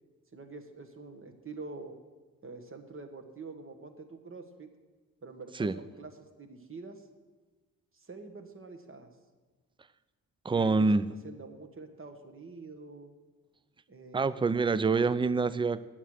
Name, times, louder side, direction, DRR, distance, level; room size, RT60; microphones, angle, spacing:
voice 1, 0.3-1.9 2.4-4.7 5.2-7.0 7.9-9.1 10.5-10.9 11.2-13.1 13.9-14.5, right 3 dB, 35° right, 6 dB, 1.3 m, -46 dB
voice 2, 10.4-11.0 14.1-15.8, right 4 dB, 15° right, 16 dB, 0.4 m, -26 dB
8.9 x 7.5 x 6.5 m, 1.2 s
cardioid pair, 65°, 35 cm